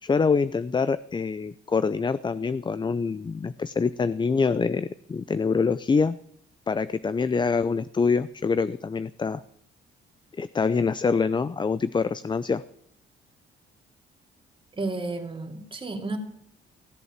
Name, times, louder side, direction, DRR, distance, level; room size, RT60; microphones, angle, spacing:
voice 1, 0.0-6.2 6.7-9.4 10.4-12.6, left 5 dB, 25° left, 15 dB, 0.5 m, -25 dB
voice 2, 14.7-16.2, right 3 dB, 25° right, 3 dB, 2.7 m, -32 dB
16.5 x 7.9 x 7.4 m, 0.69 s
cardioid pair, 90°, 20 cm